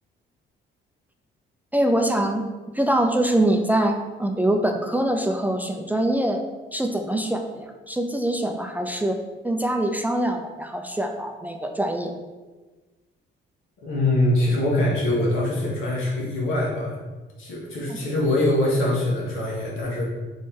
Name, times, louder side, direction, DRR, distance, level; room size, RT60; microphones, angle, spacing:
voice 1, 1.7-2.4 2.7-3.9 4.2-6.4 6.7-12.1, right 1 dB, 10° right, 4 dB, 0.4 m, -24 dB
voice 2, 13.8-17.0 17.4-20.0, left 1 dB, 85° left, -4 dB, 1.4 m, -23 dB
4.0 x 3.2 x 3.6 m, 1.3 s
cardioid pair, 90°, 20 cm